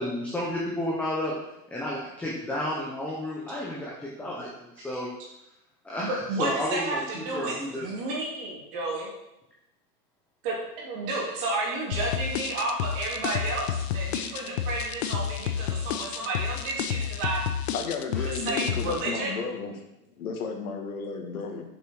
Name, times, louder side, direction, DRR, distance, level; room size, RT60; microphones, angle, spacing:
voice 1, 0.0-1.3 1.7-5.1 5.8-7.9 18.1-18.2, left 1 dB, 5° left, -5 dB, 0.9 m, -32 dB
voice 2, 6.0-9.1 10.4-17.4 18.5-19.4, right 2 dB, 35° right, -3 dB, 3.5 m, -31 dB
sound 1, 11.9-19.0, left 9 dB, 45° left, 0.8 m, -30 dB
voice 3, 17.7-19.7 20.2-21.6, left 4 dB, 60° left, 3 dB, 2.2 m, -33 dB
10.0 x 7.1 x 4.8 m, 0.87 s
hypercardioid pair, 160°, 47 cm